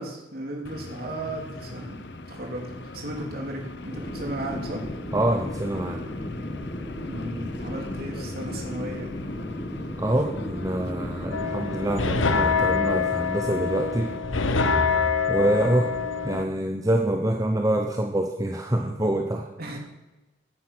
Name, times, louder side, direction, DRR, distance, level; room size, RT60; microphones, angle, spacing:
voice 1, 0.0-4.8 7.0-9.2 15.3-16.0 16.3-16.4 19.6-19.8, right 1 dB, 50° right, 0 dB, 3.6 m, -35 dB
sound 1, 0.6-14.2, left 2 dB, 60° left, 1.0 m, -40 dB
sound 2, 3.9-13.0, left 1 dB, 25° left, 1.7 m, -35 dB
voice 2, 5.1-6.0 10.0-14.1 15.3-19.5, right 1 dB, 15° right, 3 dB, 1.0 m, -26 dB
sound 3, 11.3-16.4, left 5 dB, 80° left, 1.2 m, -25 dB
16.0 x 10.5 x 6.3 m, 1.1 s
head